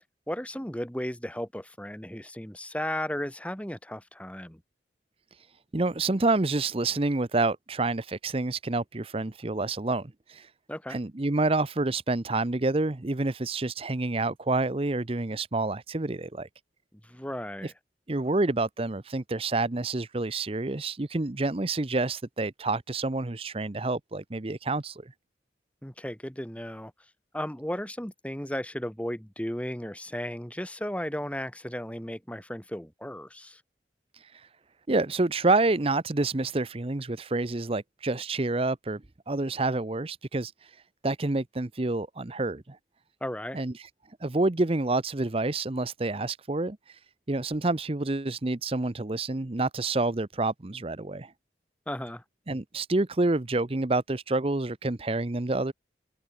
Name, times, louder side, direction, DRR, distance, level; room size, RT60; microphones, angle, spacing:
voice 1, 0.3-4.6 10.7-11.0 17.0-17.7 25.8-26.9 27.3-33.6 43.2-43.6 51.9-52.2, equal, 5° left, 3.1 m, -35 dB
voice 2, 5.7-10.5 10.9-16.5 17.6-17.7 18.1-25.0 34.3-34.5 34.9-39.0 39.3-40.7 41.0-42.8 43.5-43.9 44.2-47.0 47.3-51.3 52.5-55.7, right 2 dB, 30° right, 0.8 m, -28 dB
open air
head